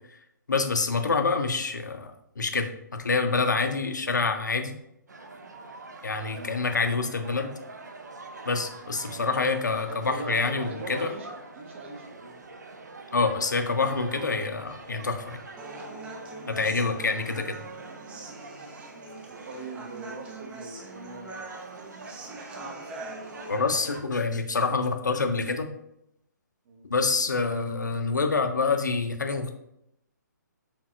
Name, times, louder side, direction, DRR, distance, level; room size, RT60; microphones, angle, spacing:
voice 1, 0.5-4.7 6.0-7.5 8.5-11.1 13.1-15.4 16.5-17.6 23.5-25.7 26.9-29.5, left 4 dB, 70° left, 6 dB, 0.6 m, -27 dB
sound 1, 5.1-24.0, right 3 dB, 65° right, 0.6 m, -45 dB
voice 2, 9.9-12.4 16.4-16.6 19.4-21.4 26.6-26.8, right 3 dB, 40° right, 2 dB, 0.9 m, -41 dB
Human voice, 15.6-23.6, right 2 dB, 10° right, 0.4 m, -43 dB
6.2 x 3.5 x 2.4 m, 0.80 s
figure-of-eight pair, 130°, 10 cm